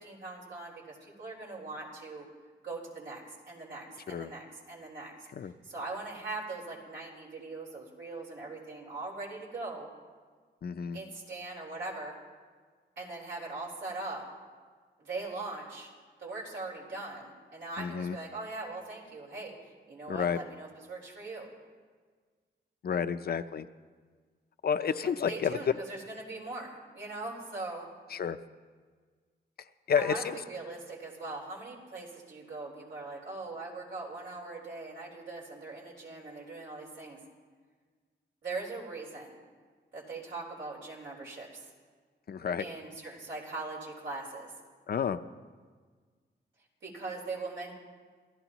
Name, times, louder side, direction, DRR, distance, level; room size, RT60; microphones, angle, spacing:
voice 1, 0.0-2.2 2.6-5.3 5.6-9.9 10.9-12.1 13.0-14.2 15.0-15.9 16.2-19.5 19.9-21.5 25.0-27.9 30.0-37.2 38.4-39.4 39.9-41.7 42.6-44.5 46.8-47.7, right 3 dB, 85° right, -2 dB, 4.1 m, -41 dB
voice 2, 10.6-11.0 17.8-18.2 20.1-20.4 22.8-23.7 24.6-25.6 28.1-28.4 29.9-30.4 42.3-42.6 44.9-45.2, left 7 dB, 55° left, 10 dB, 0.6 m, -30 dB
27.5 x 15.0 x 3.0 m, 1.5 s
wide cardioid pair, 110°, 19 cm